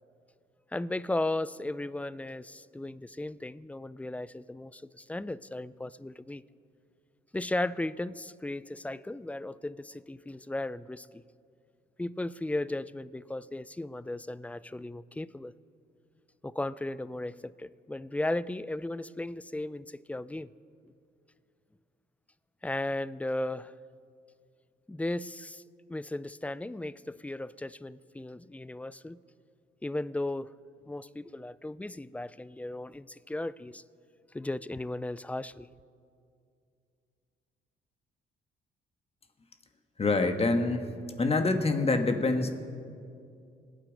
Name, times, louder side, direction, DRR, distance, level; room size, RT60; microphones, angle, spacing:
voice 1, 0.7-6.4 7.3-11.2 12.0-15.5 16.4-20.5 22.6-23.8 24.9-25.6 25.9-29.2 29.8-30.5 30.9-33.8 34.3-35.7, left 2 dB, 5° left, 18 dB, 0.4 m, -36 dB
voice 2, 40.0-40.9 41.2-42.5, left 3 dB, 30° left, 7 dB, 1.4 m, -26 dB
26.0 x 8.9 x 5.1 m, 2.4 s
cardioid pair, 90°, 20 cm